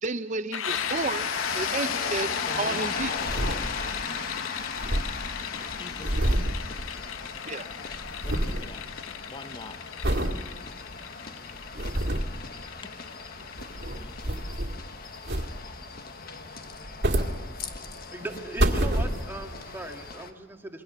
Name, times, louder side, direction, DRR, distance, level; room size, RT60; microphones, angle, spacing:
voice 1, 0.0-3.2 7.5-7.7, right 3 dB, 40° right, 9 dB, 0.7 m, -31 dB
sound 1, 0.5-16.1, left 9 dB, 80° left, 0.7 m, -37 dB
sound 2, 0.7-20.3, left 4 dB, 50° left, 1.4 m, -38 dB
voice 2, 2.4-2.9 4.2-4.4 5.5-6.6 8.2-9.8 13.7-14.2, left 2 dB, 25° left, 11 dB, 0.8 m, -45 dB
sound 3, 3.0-4.1 4.4-4.5 4.6-7.4 7.7-8.7 9.1-9.5 10.0-10.4 10.9-11.0 11.5-12.4 13.4-14.9 15.2-15.8 16.7-17.9 18.3-19.5 20.1-20.2, right 1 dB, 55° right, 2.0 m, -28 dB
voice 3, 18.1-20.8, right 2 dB, 10° right, 3 dB, 1.8 m, -38 dB
28.0 x 21.5 x 7.0 m, 1.3 s
head